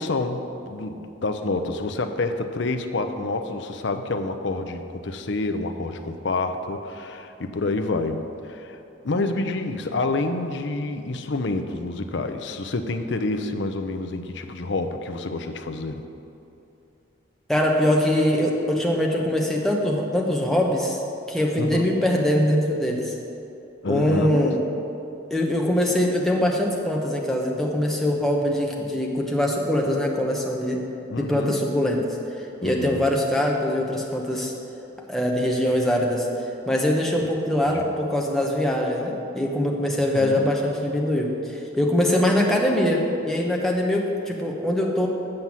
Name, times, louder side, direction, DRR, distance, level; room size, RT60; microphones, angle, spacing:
voice 1, 0.0-8.8 9.0-16.0 21.6-21.9 23.8-24.5 31.1-31.6 32.6-33.1 37.7-37.8 40.1-40.5, left 2 dB, 60° left, 7 dB, 0.6 m, -28 dB
voice 2, 17.5-21.0 21.3-23.2 23.9-24.6 25.3-30.8 31.2-34.5 35.1-36.3 36.7-45.1, left 1 dB, ahead, -2 dB, 0.9 m, -23 dB
7.8 x 5.5 x 7.3 m, 2.8 s
head